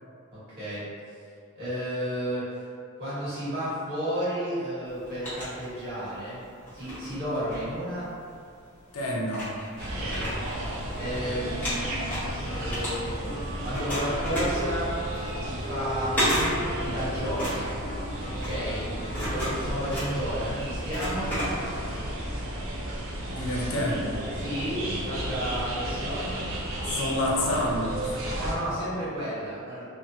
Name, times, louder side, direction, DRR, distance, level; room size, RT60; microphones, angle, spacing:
voice 1, 0.3-0.8 1.5-2.5 3.0-6.4 6.7-8.1 10.0-10.3 11.0-12.0 12.5-13.3 13.6-14.9 15.5-16.2 16.6-17.7 18.3-18.9 19.3-21.3 24.3-26.4 28.3-29.8, equal, 50° right, -12 dB, 1.3 m, -32 dB
sound 1, 4.9-6.2 6.6-8.3 8.9-9.0 9.3-11.2 11.5-13.4 13.7-22.0, equal, 10° left, 1.0 m, -32 dB
voice 2, 8.9-9.5 23.3-24.2 26.8-28.2, left 1 dB, 90° left, -3 dB, 0.6 m, -28 dB
sound 2, 9.8-28.5, right 1 dB, 70° right, 0.5 m, -33 dB
Wind instrument woodwind instrument, 10.9-20.0, left 1 dB, 45° left, 0.3 m, -40 dB
2.6 x 2.4 x 2.6 m, 2.3 s
head